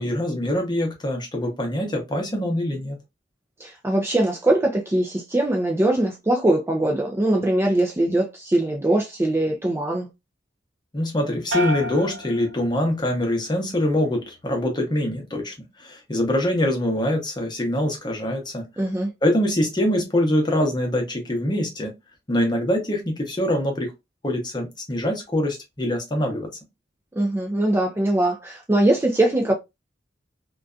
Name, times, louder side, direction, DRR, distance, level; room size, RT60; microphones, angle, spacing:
voice 1, 0.0-3.0 10.9-15.5 15.8-18.6 19.2-21.9 22.3-23.9 24.2-26.5, left 1 dB, 25° left, 0.7 m, -24 dB
voice 2, 3.6-10.1 18.8-19.1 27.2-29.5, right 1 dB, 15° right, 0.4 m, -21 dB
sound 1, 11.5-13.2 13.6-14.2, left 2 dB, 70° right, 0.6 m, -31 dB
2.6 x 2.2 x 2.3 m
head